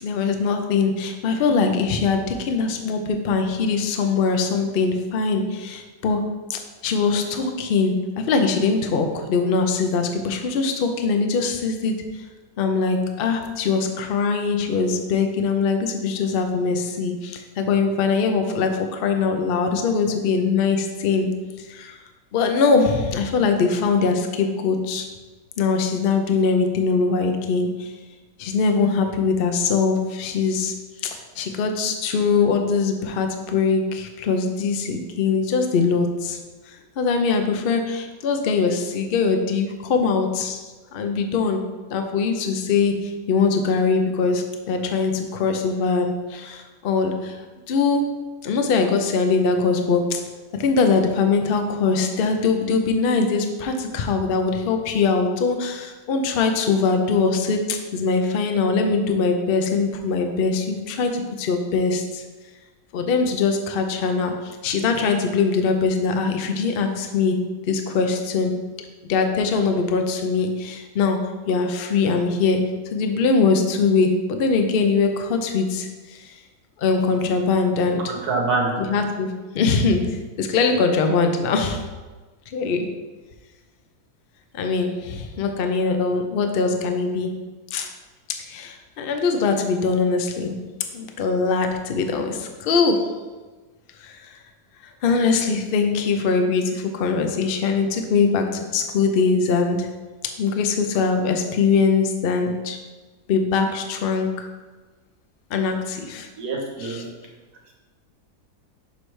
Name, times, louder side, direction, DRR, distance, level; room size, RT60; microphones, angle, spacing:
voice 1, 0.0-6.2 6.5-11.9 12.6-21.3 21.6-22.0 22.3-25.1 25.6-27.9 28.4-30.7 31.0-36.4 36.7-40.6 40.9-41.6 41.9-48.1 48.4-50.2 50.5-62.2 62.9-67.4 67.7-68.5 69.1-71.2 71.5-72.6 72.9-76.4 76.8-78.1 78.8-79.3 79.5-80.0 80.4-81.8 82.5-82.9 84.5-87.3 87.7-87.9 88.5-90.6 90.9-93.0 94.0-94.3 95.0-99.9 100.4-102.8 103.3-104.5 105.5-106.3 106.8-107.0, left 4 dB, 70° left, 5 dB, 0.5 m, -22 dB
voice 2, 78.1-78.7 106.4-107.1, right 3 dB, 70° right, 0 dB, 1.5 m, -25 dB
6.9 x 3.3 x 4.7 m, 1.3 s
omnidirectional pair, 1.8 m